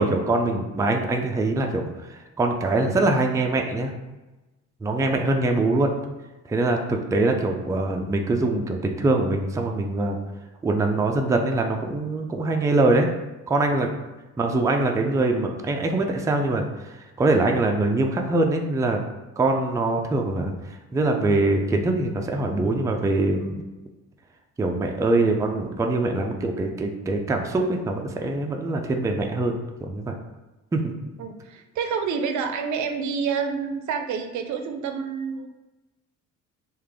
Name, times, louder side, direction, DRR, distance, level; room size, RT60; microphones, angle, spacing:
voice 1, 0.0-3.9 4.8-5.9 6.5-10.2 10.6-13.1 13.5-13.9 14.4-16.6 17.2-19.0 19.4-23.5 24.6-30.1 30.7-30.9, right 2 dB, 10° right, 2 dB, 0.3 m, -23 dB
voice 2, 31.2-35.5, right 6 dB, 70° right, 6 dB, 0.5 m, -28 dB
3.2 x 2.4 x 3.4 m, 1.1 s
cardioid pair, 90°, 30 cm